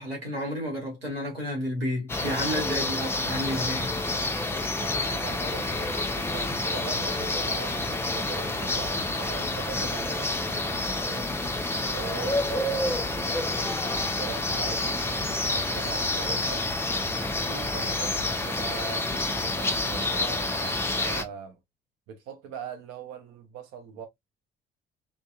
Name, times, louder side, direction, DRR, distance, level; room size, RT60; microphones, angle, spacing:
voice 1, 0.0-3.9, equal, 85° right, 0.9 m, -31 dB
sound 1, 2.1-21.2, left 2 dB, 10° left, 0.5 m, -28 dB
voice 2, 4.7-11.3 11.9-16.7 17.4-21.6 22.1-24.1, right 7 dB, 55° right, 0.6 m, -41 dB
2.6 x 2.0 x 2.3 m
figure-of-eight pair, 45°, 29 cm